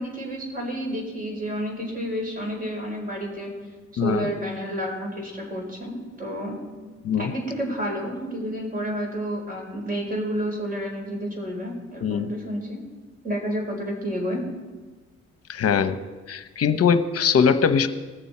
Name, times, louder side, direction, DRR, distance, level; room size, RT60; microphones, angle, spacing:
voice 1, 0.0-3.5 4.0-6.6 7.1-12.8 13.2-14.4, equal, 30° right, 0 dB, 4.7 m, -30 dB
voice 2, 4.0-4.3 7.0-7.3 12.0-12.3 15.5-16.0 16.3-17.9, left 6 dB, 55° left, 10 dB, 0.9 m, -21 dB
20.5 x 7.0 x 4.3 m, 1.3 s
cardioid pair, 90°, 30 cm